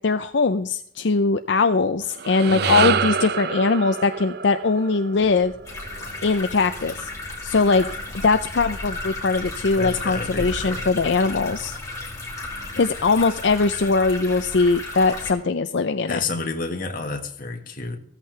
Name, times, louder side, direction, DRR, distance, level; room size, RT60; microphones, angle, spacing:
voice 1, 0.0-5.5 6.2-7.1 7.4-7.9 8.2-11.8 12.7-16.2, left 4 dB, 70° left, 9 dB, 0.5 m, -21 dB
sound 1, 2.0-6.5, right 6 dB, 55° right, 0.4 m, -27 dB
voice 2, 2.5-3.0 9.8-10.9 16.1-18.0, left 3 dB, 45° left, 4 dB, 1.6 m, -30 dB
sound 2, 5.1-13.6, equal, 75° right, 5.3 m, -47 dB
sound 3, 5.6-15.3, left 2 dB, 15° left, 2.7 m, -34 dB
15.0 x 14.0 x 3.3 m, 0.67 s
head